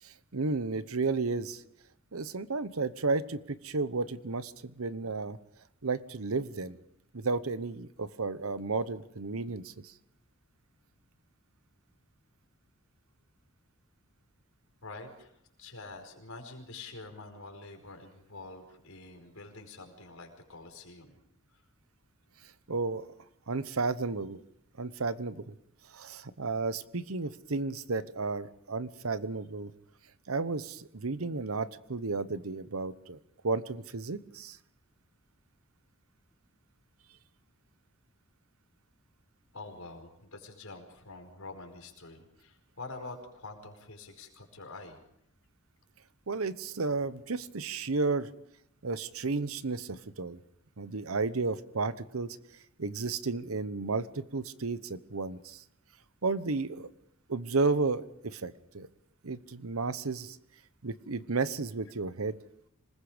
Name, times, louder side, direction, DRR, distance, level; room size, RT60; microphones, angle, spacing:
voice 1, 0.0-1.6 2.1-5.4 5.8-6.8 7.1-9.9 22.7-23.0 23.5-24.4 24.8-25.5 25.9-29.7 30.3-33.2 33.4-34.6 46.3-48.3 48.8-50.4 50.8-52.4 52.8-55.6 56.2-56.9 57.3-58.9 59.2-60.4 60.8-62.4, right 3 dB, 80° right, 14 dB, 1.0 m, -33 dB
voice 2, 14.8-15.3 15.6-21.1 39.5-45.0, left 3 dB, 80° left, 4 dB, 4.9 m, -46 dB
26.5 x 20.0 x 5.1 m, 0.78 s
head